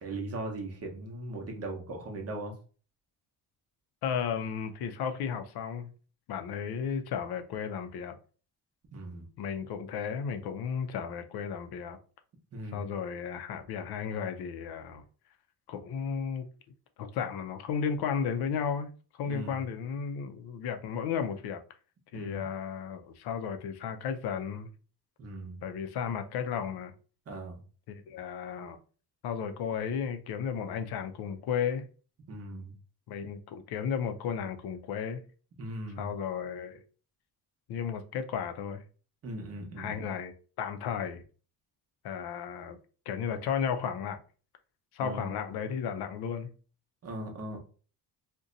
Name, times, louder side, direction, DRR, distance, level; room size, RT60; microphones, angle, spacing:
voice 1, 0.0-2.5 8.9-9.2 12.5-12.9 19.2-19.7 22.1-22.5 25.2-25.7 27.3-27.6 32.3-32.7 35.6-36.1 39.2-39.9 45.0-45.3 47.0-47.6, right 2 dB, 40° right, 0.8 m, -39 dB
voice 2, 4.0-5.9 6.3-8.2 9.4-12.0 12.7-15.0 15.7-16.5 17.0-21.6 22.1-24.7 25.6-26.9 27.9-28.8 29.2-31.9 33.1-35.2 36.0-36.8 37.7-38.8 39.8-41.2 42.0-42.8 43.1-44.2 44.9-46.5, left 7 dB, 75° left, 0.5 m, -34 dB
2.6 x 2.2 x 3.7 m
cardioid pair, 165°, 39 cm